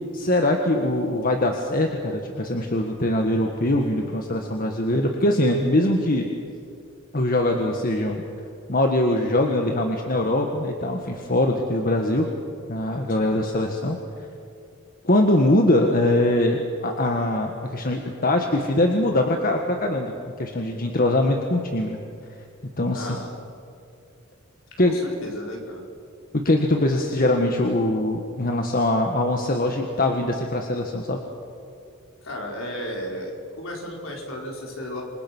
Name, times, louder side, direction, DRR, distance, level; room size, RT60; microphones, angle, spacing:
voice 1, 0.1-6.3 7.1-8.2 8.7-12.3 12.7-14.0 15.0-20.1 20.4-22.0 22.8-23.2 24.8-25.0 26.4-31.2, left 1 dB, 45° left, 3 dB, 1.8 m, -22 dB
voice 2, 22.9-23.3 24.8-25.8 32.2-35.0, left 1 dB, 65° left, -1 dB, 5.5 m, -34 dB
28.0 x 25.0 x 6.3 m, 2.5 s
head